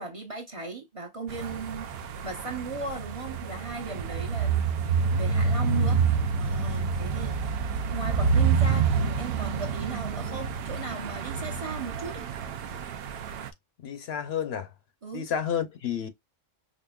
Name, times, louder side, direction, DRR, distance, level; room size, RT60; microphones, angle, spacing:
voice 1, 0.0-1.9 2.2-4.7 5.1-6.0 6.4-7.5 7.9-12.3 15.0-15.3, right 3 dB, 30° right, 0.8 m, -37 dB
sound 1, 1.3-13.5, right 5 dB, 60° right, 0.8 m, -28 dB
voice 2, 13.8-14.7 15.1-16.1, left 8 dB, 65° left, 0.8 m, -30 dB
5.1 x 2.5 x 2.3 m
omnidirectional pair, 1.2 m